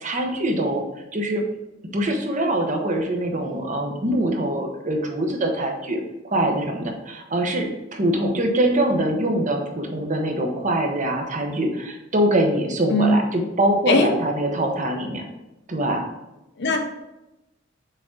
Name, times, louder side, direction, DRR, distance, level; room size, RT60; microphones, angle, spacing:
voice 1, 0.0-0.8 1.1-1.4 1.9-15.2 15.7-16.1, right 1 dB, 40° right, 2 dB, 1.0 m, -23 dB
voice 2, 12.9-13.1 13.9-14.1 16.6-16.8, left 2 dB, 60° left, 5 dB, 0.9 m, -19 dB
6.5 x 3.8 x 3.8 m, 0.96 s
head